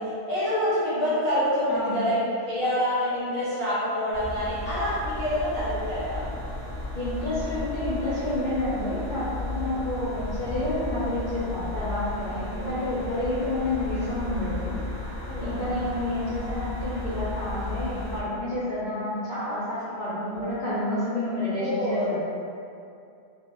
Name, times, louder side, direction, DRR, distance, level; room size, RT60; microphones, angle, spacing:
voice 1, 0.0-6.3 9.6-9.8 12.2-12.8 15.2-15.6 20.2-20.6 21.5-22.1, equal, 75° right, -11 dB, 1.4 m, -27 dB
voice 2, 1.7-2.0 6.9-14.8 15.4-22.2, left 1 dB, 60° left, -11 dB, 0.5 m, -29 dB
sound 1, 4.1-18.2, left 1 dB, 40° right, 0.7 m, -34 dB
2.9 x 2.0 x 2.9 m, 2.5 s
omnidirectional pair, 1.4 m